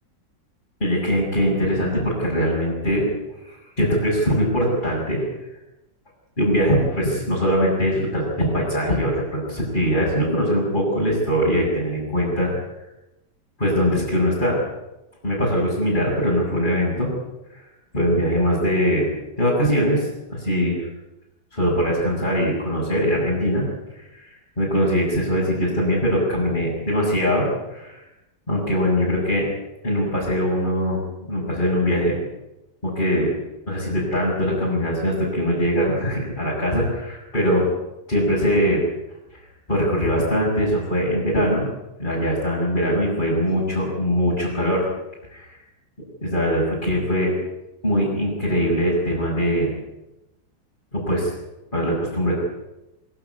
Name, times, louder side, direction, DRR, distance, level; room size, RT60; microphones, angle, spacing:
voice 1, 0.8-3.0 3.5-5.3 6.4-12.5 13.6-14.6 15.2-17.1 17.5-17.7 17.9-19.1 19.4-20.9 21.5-23.7 23.9-28.0 28.5-29.4 29.8-31.0 31.3-32.2 32.8-33.3 33.7-37.6 38.1-38.8 39.7-41.6 42.0-44.9 45.3-45.5 46.2-47.3 47.8-49.7 50.9-51.3 51.7-52.4, equal, 25° left, -6 dB, 7.0 m, -22 dB
23.5 x 15.5 x 9.6 m, 0.96 s
omnidirectional pair, 2.1 m